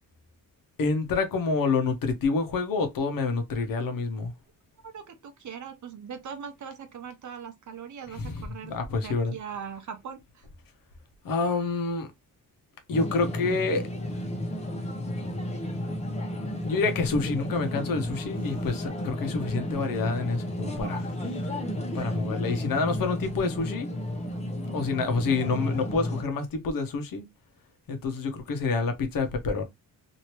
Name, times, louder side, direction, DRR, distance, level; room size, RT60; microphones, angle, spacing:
voice 1, 0.8-4.3 8.1-9.4 11.2-12.1 12.9-13.9 16.6-21.1 21.9-23.9 24.7-27.2 27.9-29.6, left 4 dB, 70° left, 0.9 m, -28 dB
voice 2, 4.8-10.5, right 7 dB, 55° right, 0.8 m, -41 dB
sound 1, 12.9-26.2, left 1 dB, 20° left, 0.7 m, -32 dB
3.0 x 2.8 x 2.9 m
cardioid pair, 120°, 35 cm